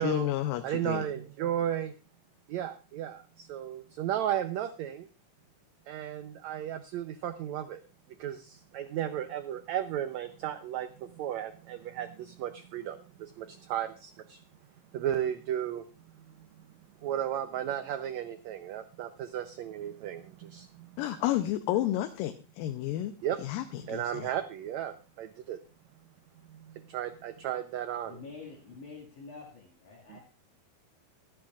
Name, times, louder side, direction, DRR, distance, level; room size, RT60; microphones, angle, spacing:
voice 1, 0.0-1.1 21.0-23.1 23.4-24.3, left 13 dB, 85° left, 8 dB, 2.4 m, -31 dB
voice 2, 0.6-1.9 2.5-5.1 5.9-7.8 8.2-14.4 14.9-15.8 17.0-21.0 23.2-23.4 23.9-25.6 26.5-28.2 30.1-30.2, right 11 dB, 85° right, 9 dB, 1.5 m, -34 dB
voice 3, 28.0-30.2, left 4 dB, 65° left, -3 dB, 3.4 m, -47 dB
24.5 x 8.7 x 2.4 m, 0.32 s
omnidirectional pair, 4.0 m